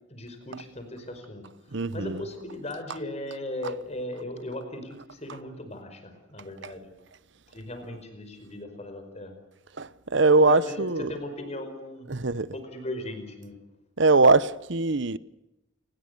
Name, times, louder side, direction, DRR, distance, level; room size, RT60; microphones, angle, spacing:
voice 1, 0.1-1.4 1.9-6.9 7.5-9.4 10.4-13.5, left 1 dB, 30° left, 5.1 m, -37 dB
voice 2, 1.7-2.2 6.6-6.7 9.8-11.1 12.1-12.5 14.0-15.2, right 3 dB, 60° right, 0.9 m, -22 dB
29.0 x 20.0 x 6.8 m
head